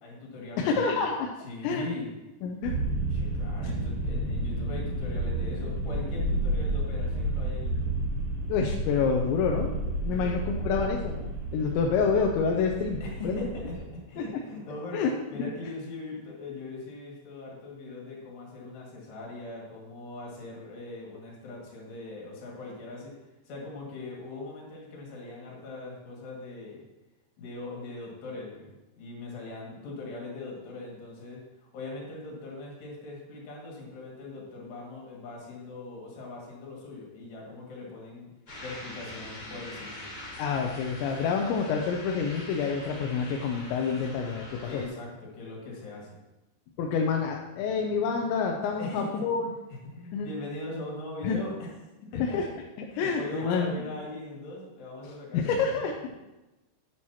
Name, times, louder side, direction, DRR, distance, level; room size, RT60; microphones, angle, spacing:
voice 1, 0.0-1.0 1.4-2.1 3.1-7.9 10.1-10.4 13.0-23.1 23.5-26.8 27.4-28.7 29.0-38.3 38.6-40.0 44.5-46.2 48.8-49.4 49.7-51.7 52.1-52.4 52.9-55.9, left 2 dB, 70° left, -2 dB, 4.2 m, -40 dB
voice 2, 0.6-1.3 1.6-1.9 2.4-2.8 8.5-9.7 10.0-13.0 13.2-13.5 14.2-14.3 14.9-15.5 40.4-44.8 46.8-49.5 50.1-50.3 51.2-51.4 52.2-52.4 52.9-53.7 55.3-55.9, left 5 dB, 85° left, 1 dB, 3.0 m, -28 dB
sound 1, 2.6-13.8, right 1 dB, 65° right, 4.1 m, -31 dB
sound 2, 38.5-44.9, left 1 dB, 25° left, 2.7 m, -43 dB
10.5 x 9.1 x 2.9 m, 1.0 s
omnidirectional pair, 5.2 m